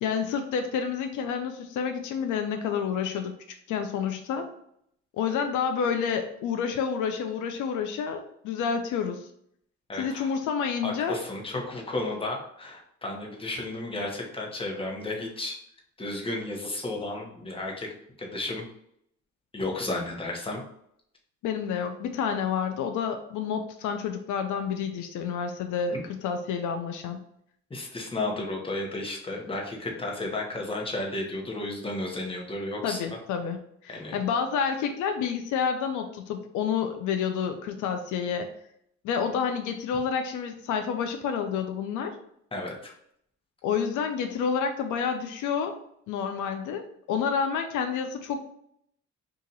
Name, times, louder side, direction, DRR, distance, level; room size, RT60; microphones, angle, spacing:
voice 1, 0.0-3.4 3.7-4.5 5.2-9.3 9.9-11.2 21.4-27.2 32.8-33.6 33.8-38.5 39.0-42.2 43.6-45.8 46.1-48.4, left 6 dB, 80° left, 6 dB, 0.5 m, -29 dB
voice 2, 9.9-10.3 10.8-15.6 16.0-17.9 18.2-18.7 19.5-20.6 27.7-33.0 33.9-34.2 42.5-42.9, left 2 dB, 20° left, -1 dB, 1.0 m, -33 dB
2.8 x 2.5 x 3.9 m, 0.71 s
cardioid pair, 90°, 30 cm